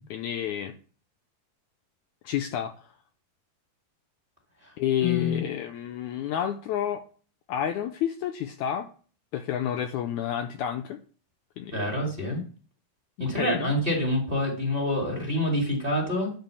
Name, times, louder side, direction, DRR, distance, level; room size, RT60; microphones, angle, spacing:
voice 1, 0.1-0.7 2.2-2.7 4.8-7.0 7.5-8.9 9.3-11.0 11.6-11.9 13.2-13.7, left 10 dB, 80° left, 6 dB, 1.8 m, -30 dB
voice 2, 5.0-5.4 11.7-12.4 13.2-16.3, left 1 dB, 20° right, 1 dB, 1.9 m, -27 dB
10.5 x 4.5 x 6.9 m, 0.41 s
omnidirectional pair, 3.9 m